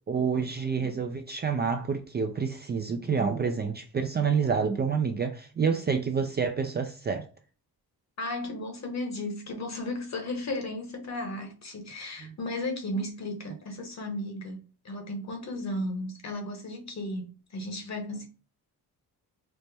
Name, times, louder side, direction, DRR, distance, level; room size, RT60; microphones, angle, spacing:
voice 1, 0.1-7.3 12.2-12.3, right 6 dB, 25° right, 0.4 m, -28 dB
voice 2, 8.2-18.3, left 1 dB, 45° left, 1.1 m, -35 dB
4.3 x 2.1 x 3.3 m
cardioid pair, 95°, 39 cm